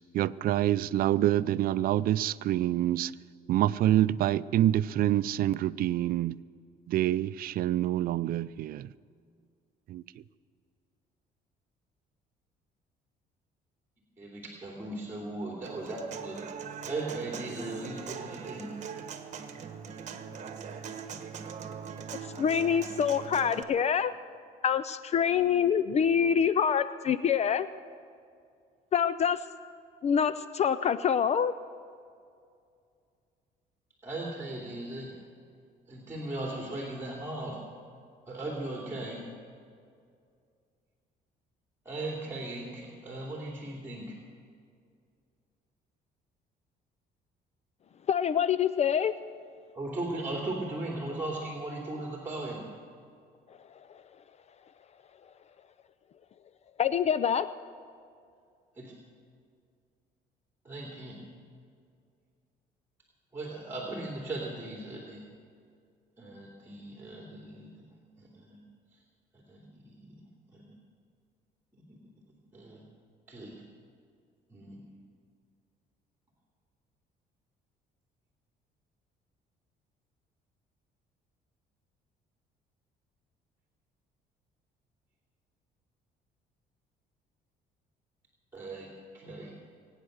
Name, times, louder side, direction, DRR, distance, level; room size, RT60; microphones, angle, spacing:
voice 1, 0.1-3.1 3.5-6.3 6.9-8.8 9.9-10.0, right 13 dB, 60° right, 0.4 m, -26 dB
voice 2, 14.2-16.4 16.8-18.7 34.0-35.1 35.9-37.6 38.3-39.2 41.8-44.1 49.7-52.6 58.8-58.9 60.6-61.1 63.3-65.2 66.2-67.8 68.2-68.6 69.3-70.2 70.5-70.8 71.9-72.0 72.5-72.8 73.3-73.5 74.5-74.8 88.5-88.9 89.1-89.5, right 2 dB, 15° right, 2.8 m, -38 dB
Human voice / Acoustic guitar, 15.6-23.6, right 6 dB, 45° right, 1.3 m, -41 dB
voice 3, 22.4-24.1 24.6-27.7 28.9-29.4 30.0-31.5 48.1-49.1 56.8-57.5, left 7 dB, 40° left, 0.5 m, -26 dB
23.0 x 9.1 x 6.5 m
cardioid pair, 110°, 17 cm